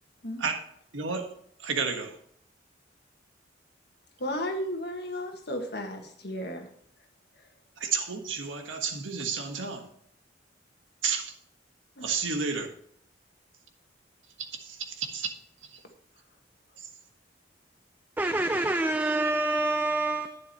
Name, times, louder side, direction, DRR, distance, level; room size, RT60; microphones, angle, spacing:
voice 1, 0.9-2.2 7.8-9.9 11.0-11.3 12.0-12.7 14.5-15.3 15.6-15.8 16.8-16.9, right 5 dB, 85° right, 1.5 m, -31 dB
voice 2, 4.2-6.7 12.0-12.1, left 1 dB, 55° left, 1.8 m, -34 dB
voice 3, 18.2-20.4, right 2 dB, 10° right, 0.3 m, -26 dB
11.0 x 9.4 x 3.1 m
head